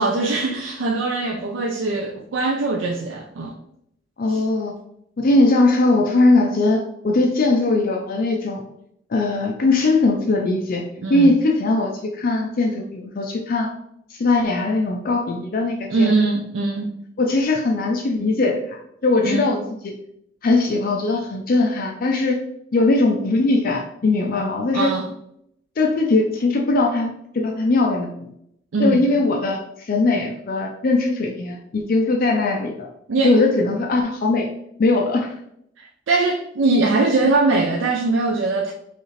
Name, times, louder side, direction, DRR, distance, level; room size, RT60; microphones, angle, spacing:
voice 1, 0.0-3.5 4.3-4.4 11.0-11.3 15.9-17.0 19.2-19.5 24.7-25.1 28.7-29.1 33.1-33.4 35.8-38.7, right 3 dB, 80° right, 0.4 m, -21 dB
voice 2, 4.2-4.7 5.2-8.6 9.1-13.7 14.1-16.1 17.2-19.6 19.8-19.9 20.4-22.4 22.7-24.9 25.8-28.3 28.8-32.9 33.2-34.5 34.8-35.3, left 2 dB, 50° left, 0.4 m, -20 dB
5.2 x 2.5 x 3.1 m
head